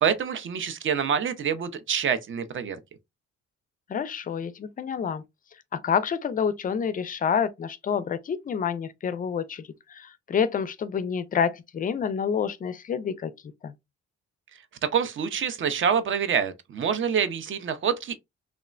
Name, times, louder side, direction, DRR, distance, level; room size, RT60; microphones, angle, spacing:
voice 1, 0.0-2.8 14.8-18.1, right 7 dB, 40° right, 0.5 m, -26 dB
voice 2, 3.9-5.2 5.7-13.3 13.6-13.7, left 7 dB, 30° left, 0.4 m, -28 dB
3.1 x 2.0 x 2.3 m
cardioid pair, 90°, 30 cm